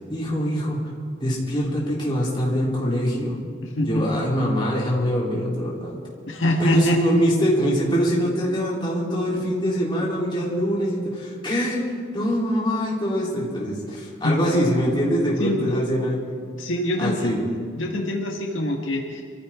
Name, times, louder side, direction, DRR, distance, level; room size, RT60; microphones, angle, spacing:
voice 1, 0.1-0.8 1.2-3.4 3.8-6.0 6.6-11.8 12.1-16.3 17.0-17.4, equal, 25° left, -5 dB, 3.5 m, -23 dB
voice 2, 3.6-4.1 6.3-7.0 14.2-14.4 15.4-15.8 16.6-17.4 17.7-19.2, left 1 dB, 75° left, 0 dB, 1.6 m, -24 dB
25.0 x 14.5 x 3.7 m, 2.2 s
head